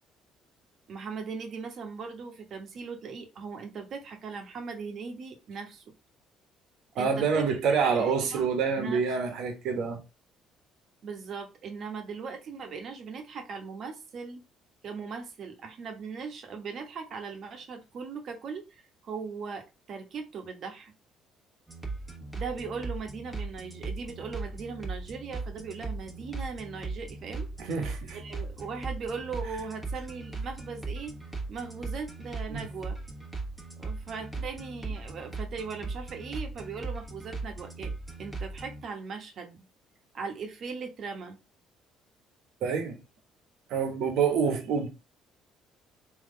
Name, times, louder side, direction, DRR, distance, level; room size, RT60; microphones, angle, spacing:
voice 1, 0.9-5.8 6.9-7.4 8.0-9.0 11.0-14.4 14.8-20.9 22.3-27.5 28.1-31.1 31.5-33.0 33.8-37.9 38.2-39.6 40.1-41.4, right 5 dB, 55° right, 1.1 m, -39 dB
voice 2, 7.0-10.0 27.6-28.2 32.5-32.6 42.6-43.0 43.7-44.9, right 5 dB, 75° right, 1.2 m, -27 dB
sound 1, 21.7-38.8, right 3 dB, 10° right, 1.3 m, -38 dB
3.7 x 3.1 x 3.8 m
cardioid pair, 85°, 0 cm